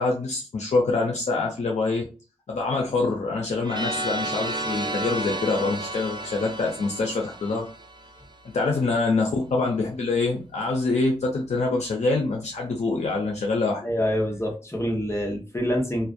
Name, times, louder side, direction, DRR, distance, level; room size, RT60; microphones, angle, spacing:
voice 1, 0.0-2.0 2.5-7.7 8.5-13.8, left 3 dB, 90° left, -1 dB, 0.5 m, -25 dB
sound 1, 3.6-8.5, right 1 dB, 40° right, 0.5 m, -32 dB
voice 2, 13.8-16.1, equal, 25° left, 0 dB, 0.9 m, -26 dB
2.4 x 2.1 x 2.5 m, 0.33 s
cardioid pair, 40°, 11 cm